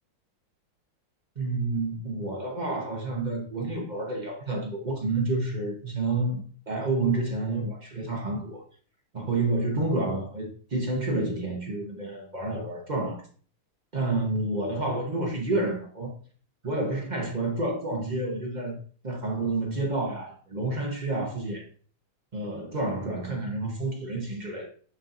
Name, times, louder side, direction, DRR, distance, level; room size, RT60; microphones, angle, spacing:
voice 1, 1.4-8.6 9.1-13.2 13.9-16.1 16.6-18.8 19.0-21.6 22.3-24.7, right 2 dB, 45° right, 0.5 m, -29 dB
6.6 x 5.5 x 2.6 m
omnidirectional pair, 2.3 m